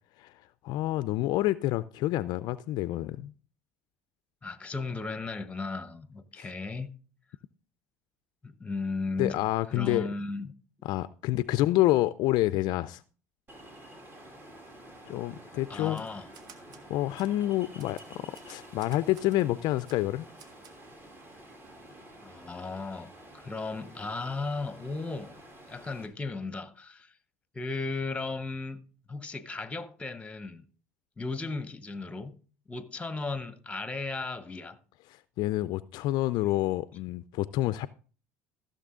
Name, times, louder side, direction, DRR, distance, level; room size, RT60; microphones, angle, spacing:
voice 1, 0.2-3.3 6.3-6.5 9.2-10.1 10.8-13.0 15.1-16.0 16.9-20.3 35.1-37.9, left 16 dB, 60° left, 0.4 m, -28 dB
voice 2, 4.4-6.9 8.4-9.4 9.7-10.5 15.7-16.3 22.2-25.4 25.7-27.1 27.5-28.8 29.1-30.6 31.2-32.4 32.7-34.8, left 3 dB, 15° left, 1.0 m, -35 dB
Ocean, 13.5-26.1, right 1 dB, 30° right, 2.9 m, -50 dB
Typewriter, 15.8-16.9 17.2-17.3 17.8-19.4 19.9-20.0 20.4-20.8, right 6 dB, 55° right, 1.4 m, -54 dB
15.0 x 6.7 x 3.7 m
hypercardioid pair, 70°, 8 cm